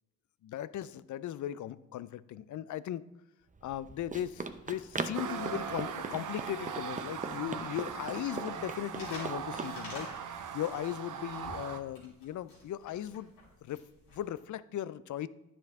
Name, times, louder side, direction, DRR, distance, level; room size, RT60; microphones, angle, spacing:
voice 1, 0.4-3.0 3.6-10.1 10.5-13.3 13.6-13.8 14.1-15.3, left 11 dB, 50° left, 18 dB, 0.5 m, -38 dB
Run, 3.6-9.8, right 3 dB, 20° right, 0.7 m, -41 dB
sound 1, 5.1-11.8, right 7 dB, 55° right, 0.8 m, -40 dB
sound 2, 8.9-14.4, left 2 dB, 85° left, 3.4 m, -48 dB
9.8 x 6.1 x 3.6 m, 0.92 s
supercardioid pair, 55°, 39 cm